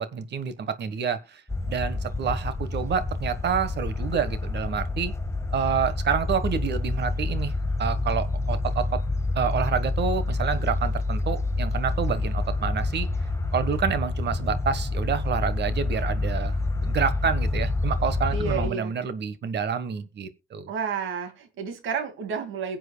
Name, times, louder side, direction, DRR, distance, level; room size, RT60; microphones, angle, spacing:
voice 1, 0.0-1.4 1.7-5.1 5.5-7.5 7.8-9.0 9.3-13.1 13.5-16.6 16.8-20.7, right 7 dB, 60° right, 1.4 m, -28 dB
sound 1, 1.5-18.7, left 2 dB, 15° left, 1.5 m, -28 dB
voice 2, 18.3-18.9 20.7-22.8, right 6 dB, 85° right, 2.2 m, -31 dB
22.0 x 7.8 x 2.3 m
cardioid pair, 90°, 20 cm